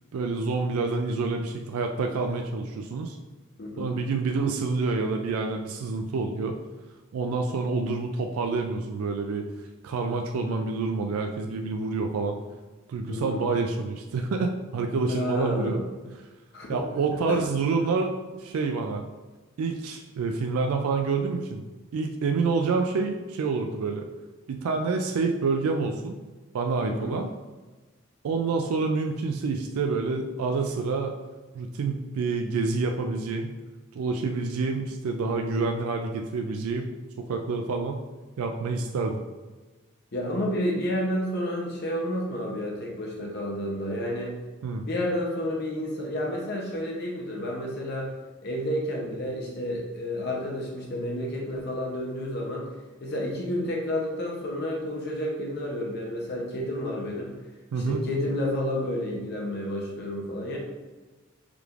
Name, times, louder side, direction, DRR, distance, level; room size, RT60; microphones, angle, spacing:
voice 1, 0.1-3.2 3.8-6.6 7.1-9.5 9.8-12.4 12.9-15.8 16.7-18.1 18.4-19.0 19.6-21.6 21.9-24.0 24.5-26.2 26.5-27.3 28.2-31.1 31.5-33.5 33.9-36.9 37.2-38.0 38.4-39.2 44.6-44.8 57.7-58.0, right 4 dB, 90° right, 4 dB, 0.3 m, -27 dB
voice 2, 3.6-3.9 13.1-13.4 15.1-15.9 16.5-16.8 17.3-17.4 26.8-27.2 40.1-44.4 44.8-48.1 48.4-52.7 53.0-57.4 57.8-60.6, left 1 dB, 50° left, -1 dB, 0.6 m, -30 dB
5.0 x 3.2 x 2.4 m, 1.3 s
head